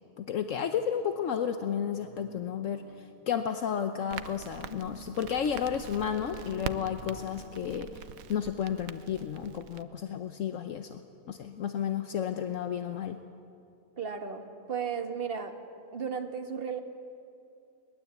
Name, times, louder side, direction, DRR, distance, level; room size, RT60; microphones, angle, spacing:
voice 1, 0.2-11.0 11.3-13.2, left 8 dB, 70° left, 8 dB, 1.2 m, -32 dB
sound 1, 1.1-1.4 1.8-3.5 3.9-9.0 10.1-10.2 10.5-10.6, left 2 dB, 55° left, 1.7 m, -50 dB
Crackle, 4.1-9.8, right 9 dB, 85° right, 1.2 m, -44 dB
voice 2, 14.0-15.6 15.9-16.8, right 6 dB, 45° right, 6 dB, 1.7 m, -34 dB
22.5 x 20.0 x 8.2 m, 2.6 s
omnidirectional pair, 1.4 m